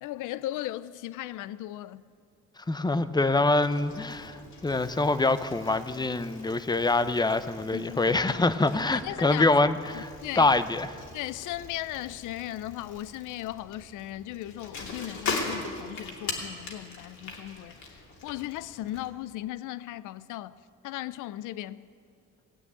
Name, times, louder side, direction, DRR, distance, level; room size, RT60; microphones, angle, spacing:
voice 1, 0.0-2.0 7.7-8.2 9.0-9.5 9.9-10.5 11.1-20.5 20.8-21.8, left 14 dB, 85° left, 0.5 m, -37 dB
voice 2, 2.7-4.4 4.6-10.9, left 2 dB, 15° left, 0.6 m, -25 dB
Bicycle, 3.6-19.1, left 3 dB, 65° left, 2.8 m, -41 dB
18.5 x 8.8 x 8.4 m
cardioid pair, 90°, 30 cm